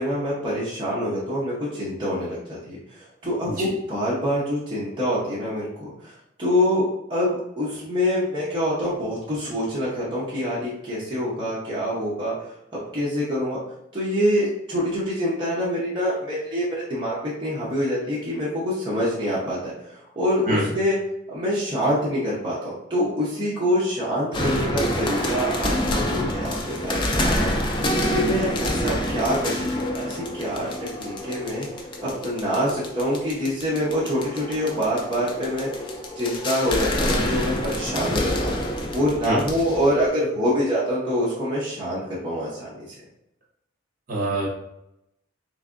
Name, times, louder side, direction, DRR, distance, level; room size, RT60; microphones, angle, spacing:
voice 1, 0.0-2.8 3.2-12.3 12.9-13.6 13.9-21.0 21.3-26.5 26.8-30.7 31.0-31.7 32.0-35.7 36.1-42.9, equal, 25° right, -8 dB, 0.8 m, -25 dB
voice 2, 3.4-3.8 20.4-20.7 39.2-39.4 44.1-44.5, right 1 dB, 45° right, -4 dB, 1.1 m, -25 dB
sound 1, 24.3-40.1, left 1 dB, 25° left, 0.4 m, -27 dB
3.5 x 3.2 x 2.5 m, 0.82 s
head